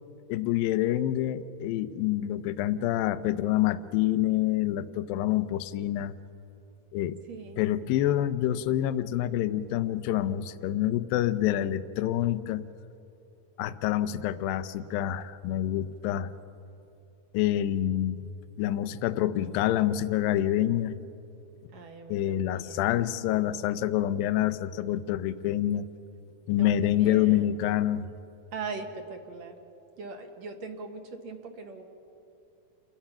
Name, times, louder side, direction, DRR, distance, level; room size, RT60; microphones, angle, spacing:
voice 1, 0.3-6.1 6.9-7.2 7.6-12.7 13.6-16.3 17.3-18.2 18.6-21.0 22.1-25.9 26.5-28.1, left 12 dB, 80° left, 13 dB, 2.4 m, -27 dB
voice 2, 7.3-7.6 21.7-23.0 26.6-27.5 28.5-29.6 30.0-31.8, right 4 dB, 55° right, 4 dB, 2.4 m, -40 dB
29.0 x 21.0 x 5.8 m, 2.8 s
omnidirectional pair, 4.3 m